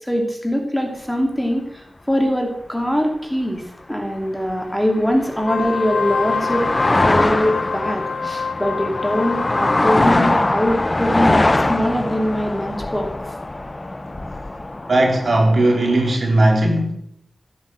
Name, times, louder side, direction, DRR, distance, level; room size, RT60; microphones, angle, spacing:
voice 1, 0.0-3.6 3.9-6.7 7.0-13.1, equal, 5° left, 3 dB, 2.7 m, -22 dB
sound 1, 4.5-16.2, left 2 dB, 25° left, 0.9 m, -22 dB
Wind instrument woodwind instrument, 5.3-10.6, left 5 dB, 90° left, 0.7 m, -27 dB
voice 2, 14.9-16.9, right 1 dB, 55° right, 1 dB, 4.4 m, -17 dB
16.5 x 8.5 x 7.7 m, 0.71 s
wide cardioid pair, 110°, 0 cm